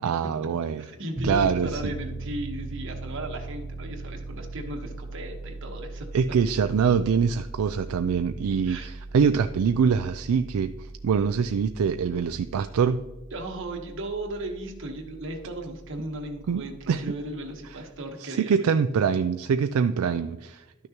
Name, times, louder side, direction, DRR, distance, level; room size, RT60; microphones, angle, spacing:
voice 1, 0.0-0.8 1.2-1.9 6.1-13.0 16.5-17.1 18.2-20.6, right 6 dB, 80° right, 9 dB, 0.4 m, -24 dB
voice 2, 0.8-6.1 8.7-8.9 13.3-18.7, right 1 dB, 60° right, 3 dB, 1.3 m, -36 dB
Piano, 1.2-17.8, right 2 dB, 30° right, 0.9 m, -39 dB
12.0 x 6.4 x 3.0 m, 1.1 s
head